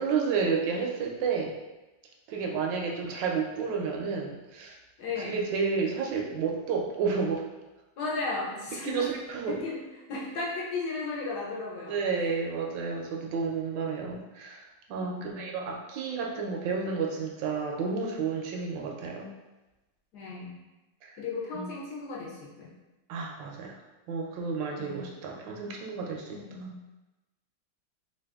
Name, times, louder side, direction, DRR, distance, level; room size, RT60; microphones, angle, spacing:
voice 1, 0.0-1.5 2.3-4.8 5.2-7.4 8.8-9.6 11.9-19.3 21.0-21.1 21.5-21.7 23.1-23.8 24.1-26.7, right 5 dB, 75° right, 0 dB, 1.2 m, -31 dB
voice 2, 5.0-5.4 8.0-9.1 9.5-9.8 10.1-12.0 15.0-15.7 20.1-20.5 21.2-22.7 24.8-25.0 26.3-26.8, left 3 dB, 65° left, -5 dB, 1.3 m, -35 dB
3.3 x 2.4 x 3.4 m, 1.1 s
omnidirectional pair, 2.0 m